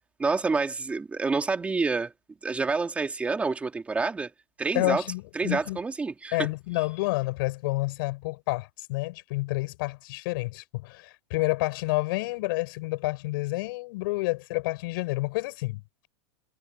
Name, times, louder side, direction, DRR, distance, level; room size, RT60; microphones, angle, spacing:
voice 1, 0.2-2.1 2.4-4.3 4.6-5.0 5.3-6.5, right 4 dB, 10° right, 2.7 m, -28 dB
voice 2, 4.7-5.8 6.3-15.8, left 22 dB, 50° left, 7.7 m, -29 dB
supercardioid pair, 160°, 14 cm